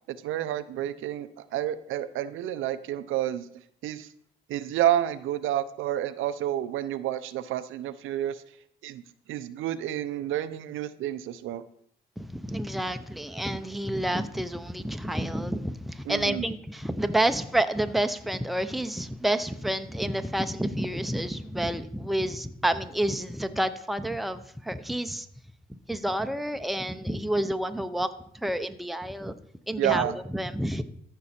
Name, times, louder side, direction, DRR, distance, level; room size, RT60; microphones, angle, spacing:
voice 1, 0.1-3.4 3.8-4.1 4.5-8.4 8.8-9.0 9.3-11.6 16.1-16.5 29.8-30.2, right 12 dB, 85° right, 13 dB, 0.6 m, -29 dB
voice 2, 12.2-25.3 25.7-28.1 28.3-29.3 29.7-30.8, right 1 dB, ahead, 9 dB, 0.7 m, -29 dB
14.0 x 5.5 x 4.3 m, 0.67 s
cardioid pair, 90°, 20 cm